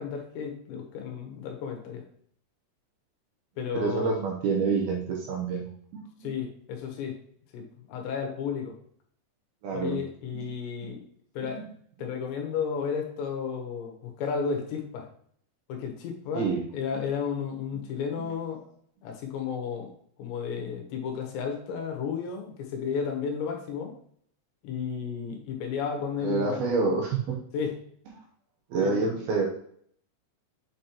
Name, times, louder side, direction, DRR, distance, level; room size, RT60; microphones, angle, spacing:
voice 1, 0.0-2.0 3.6-4.1 6.2-7.2 7.5-8.8 9.7-11.0 11.3-11.6 12.0-15.1 15.7-18.6 19.0-19.9 20.2-23.9 24.6-26.6 27.5-27.8 28.8-29.0, left 6 dB, 75° left, 2 dB, 3.2 m, -33 dB
voice 2, 3.7-5.7 5.9-6.3 9.6-10.0 10.3-10.4 11.4-11.7 16.3-16.6 18.2-18.3 26.2-27.4 28.7-29.5, right 4 dB, 70° right, -1 dB, 2.5 m, -27 dB
7.5 x 5.2 x 2.9 m, 0.62 s
omnidirectional pair, 5.3 m